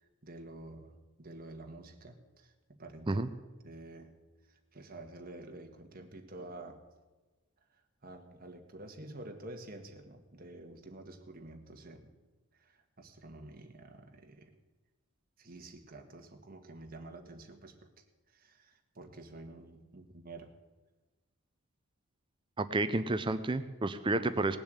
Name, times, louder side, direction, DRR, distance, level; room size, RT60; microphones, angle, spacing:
voice 1, 0.2-2.5 2.8-3.2 3.6-4.2 4.7-6.8 8.0-12.2 12.6-12.7 13.0-14.5 15.4-17.9 18.3-20.5, right 2 dB, 40° right, 4 dB, 1.5 m, -49 dB
voice 2, 22.6-24.6, right 2 dB, 20° right, 11 dB, 0.5 m, -30 dB
18.5 x 7.0 x 8.0 m, 1.2 s
head